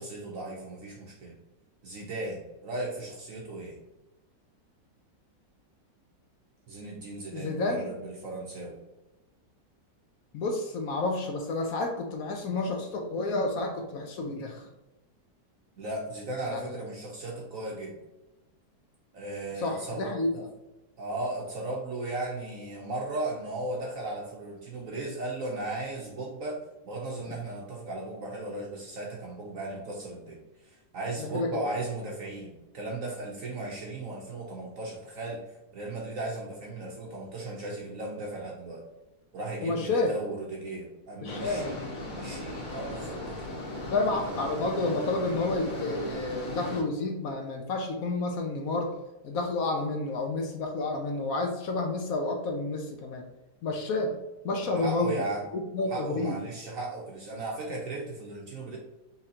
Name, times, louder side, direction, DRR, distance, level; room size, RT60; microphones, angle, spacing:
voice 1, 0.0-1.4 1.8-3.8 6.7-8.8 15.8-18.0 19.1-20.1 21.0-35.5 35.7-38.8 39.3-41.9 42.1-43.5 54.7-55.5 55.9-58.8, right 2 dB, 60° right, -1 dB, 0.9 m, -36 dB
voice 2, 7.3-7.9 10.3-14.7 16.4-16.8 19.6-20.5 31.2-31.5 39.6-40.1 41.2-41.9 43.9-48.9 49.2-53.2 53.6-54.1 54.4-55.3 55.5-56.4, left 2 dB, 65° left, 2 dB, 0.9 m, -30 dB
sound 1, 41.2-46.8, left 2 dB, 25° left, 1.6 m, -37 dB
5.6 x 3.2 x 2.8 m, 1.0 s
omnidirectional pair, 2.1 m